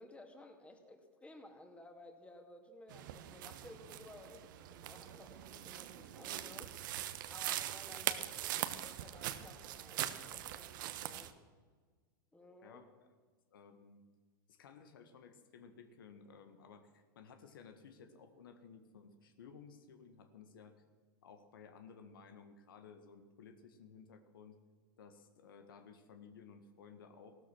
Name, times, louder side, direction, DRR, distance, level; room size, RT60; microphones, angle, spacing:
voice 1, 0.0-6.8 7.3-11.3 12.3-12.8, left 2 dB, 10° left, 5 dB, 2.3 m, -56 dB
sound 1, 2.9-11.3, right 13 dB, 65° right, 1.1 m, -42 dB
voice 2, 12.6-13.1 13.5-14.1 14.5-20.8 21.2-24.6 25.0-27.4, left 6 dB, 75° left, 8 dB, 1.6 m, -57 dB
16.0 x 13.0 x 6.2 m, 1.5 s
hypercardioid pair, 105°, 12 cm